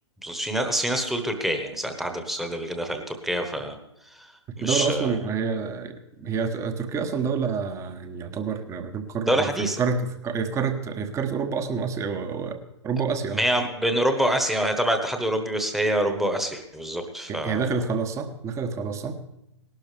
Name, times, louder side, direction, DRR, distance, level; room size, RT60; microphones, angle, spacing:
voice 1, 0.2-3.8 4.1-4.3 4.6-5.2 9.2-9.8 13.3-17.8, right 1 dB, ahead, 5 dB, 1.2 m, -26 dB
voice 2, 4.5-9.5 9.8-12.6 12.8-13.4 17.3-19.2, right 5 dB, 20° right, 9 dB, 1.0 m, -28 dB
18.5 x 12.0 x 3.4 m, 0.84 s
figure-of-eight pair, 120°, 15 cm